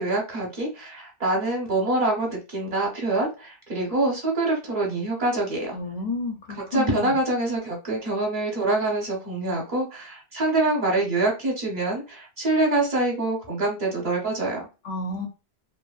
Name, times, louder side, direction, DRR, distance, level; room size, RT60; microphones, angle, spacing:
voice 1, 0.0-5.8 6.5-14.7, right 2 dB, 45° right, -2 dB, 0.9 m, -25 dB
voice 2, 5.7-7.1 14.8-15.3, left 3 dB, 55° left, 1 dB, 0.6 m, -31 dB
2.7 x 2.1 x 2.3 m, 0.31 s
omnidirectional pair, 1.1 m